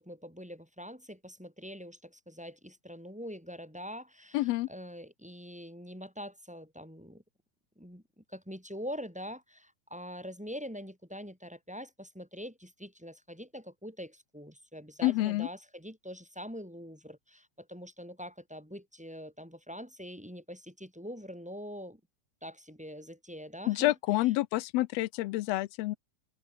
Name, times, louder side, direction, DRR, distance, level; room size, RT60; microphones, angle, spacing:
voice 1, 0.0-7.2 7.8-22.0 22.4-23.9, equal, ahead, 6.5 m, -44 dB
voice 2, 4.3-4.7 15.0-15.5 23.7-26.0, left 18 dB, 85° left, 1.5 m, -28 dB
omnidirectional pair, 3.5 m